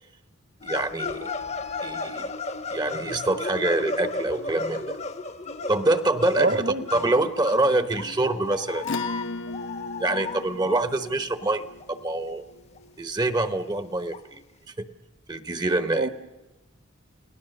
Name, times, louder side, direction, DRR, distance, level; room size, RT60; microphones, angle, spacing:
sound 1, 0.6-10.8 11.0-11.1 11.4-11.5 11.8-11.9 12.3-12.4 12.7-12.8 13.3-13.4 14.1-14.2, left 3 dB, 30° left, 0.9 m, -34 dB
voice 1, 0.6-1.3 1.8-2.3 2.7-5.0 5.7-8.9 10.0-12.4 13.0-14.4 14.8-14.9 15.3-16.1, right 2 dB, 20° right, 10 dB, 0.9 m, -25 dB
voice 2, 6.4-6.8 15.7-16.1, right 2 dB, 50° right, 11 dB, 1.2 m, -25 dB
Acoustic guitar / Strum, 8.8-13.8, left 2 dB, 60° left, 0.9 m, -37 dB
29.5 x 18.0 x 6.5 m, 1.1 s
head